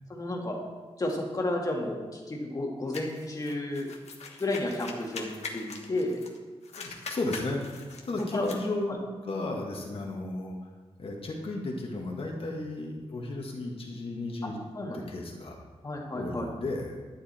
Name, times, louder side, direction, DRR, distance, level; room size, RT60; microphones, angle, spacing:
voice 1, 0.1-0.6 1.0-3.9 4.4-6.2 8.3-8.5 8.9-9.0 14.4-14.5 14.7-15.0 15.8-16.5, left 1 dB, 35° left, -1 dB, 2.2 m, -32 dB
sound 1, 2.9-6.4 6.6-8.6, left 4 dB, 90° left, 1.4 m, -42 dB
voice 2, 6.8-10.7 11.0-14.6 14.9-15.6 16.1-17.0, left 2 dB, 60° left, 0 dB, 1.7 m, -34 dB
12.0 x 9.9 x 4.3 m, 1.4 s
wide cardioid pair, 150°, 11 cm